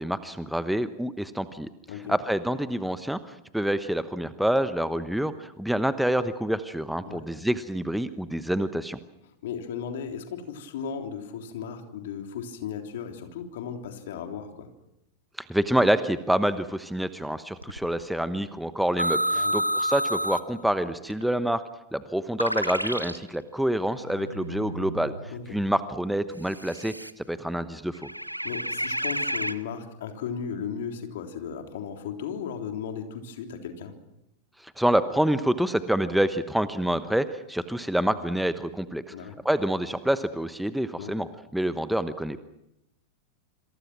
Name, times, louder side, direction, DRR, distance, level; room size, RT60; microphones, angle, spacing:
voice 1, 0.0-1.7 2.1-9.0 15.4-21.6 21.9-28.0 34.6-39.1 39.4-41.3 41.5-42.4, right 1 dB, ahead, 12 dB, 1.1 m, -27 dB
voice 2, 9.4-14.7 19.3-19.6 25.3-25.6 28.4-33.9 39.1-39.4 41.0-41.1, left 7 dB, 55° left, 5 dB, 3.5 m, -36 dB
sound 1, 17.6-17.9 19.0-20.5 21.1-21.3 22.4-23.2 24.0-25.7 26.5-27.1 27.9-29.6, equal, 90° right, 0.9 m, -30 dB
27.0 x 26.5 x 6.2 m, 0.84 s
figure-of-eight pair, 90°, 0 cm